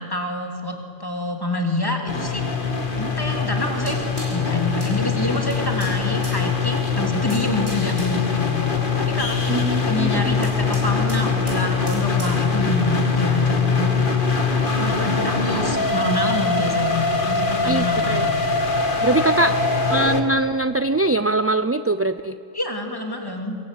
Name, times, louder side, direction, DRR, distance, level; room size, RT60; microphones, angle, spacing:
voice 1, 0.0-2.7 3.0-4.0 4.3-8.6 9.0-14.1 14.7-18.3 19.2-19.6 22.5-23.6, left 1 dB, 20° left, 2 dB, 3.2 m, -27 dB
sound 1, 2.1-20.2, left 4 dB, 55° left, 2.0 m, -22 dB
sound 2, 3.6-12.8, right 1 dB, 90° right, 8.0 m, -37 dB
voice 2, 9.5-10.2 17.7-18.3 19.0-19.6 19.9-22.4, right 2 dB, 20° right, 11 dB, 0.4 m, -22 dB
24.5 x 21.5 x 9.3 m, 2.5 s
omnidirectional pair, 1.0 m